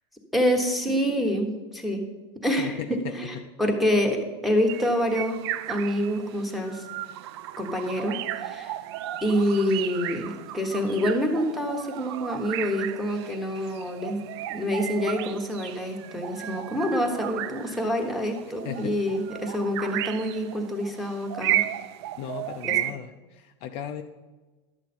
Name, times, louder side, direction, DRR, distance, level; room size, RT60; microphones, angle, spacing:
voice 1, 0.3-2.0 2.4-5.4 5.7-6.9 7.6-8.8 9.2-14.2 14.5-21.7 22.6-22.8, equal, ahead, 2 dB, 1.2 m, -27 dB
voice 2, 2.6-3.5 18.6-19.0 22.2-24.0, left 9 dB, 40° left, 6 dB, 0.5 m, -36 dB
sound 1, 4.7-22.9, right 13 dB, 65° right, 0.5 m, -34 dB
11.5 x 8.1 x 4.4 m, 1.2 s
supercardioid pair, 155°, 15 cm